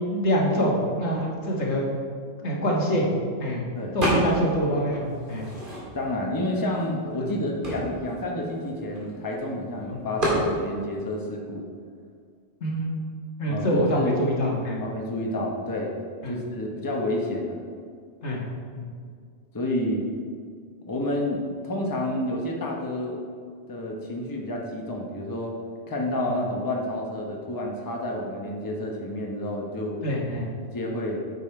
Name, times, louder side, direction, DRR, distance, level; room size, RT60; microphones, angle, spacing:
voice 1, 0.1-1.8 2.4-3.1 3.4-3.6 3.9-5.5 7.2-7.3 9.9-10.0 12.6-12.9 13.4-14.8 16.2-16.3 18.2-18.4 18.7-18.8 30.0-30.5, equal, 75° left, -2 dB, 1.7 m, -25 dB
sound 1, 4.0-4.6 4.9-6.2 6.8-6.9 7.1-9.4 10.2-10.5, right 1 dB, 45° right, 2.3 m, -28 dB
voice 2, 5.9-11.6 13.5-14.1 14.8-15.9 16.3-17.6 19.5-20.0 20.9-23.2 23.7-25.6 25.9-30.0 30.6-31.2, left 1 dB, 20° left, 0 dB, 0.9 m, -29 dB
8.8 x 5.5 x 4.4 m, 2.1 s
omnidirectional pair, 1.2 m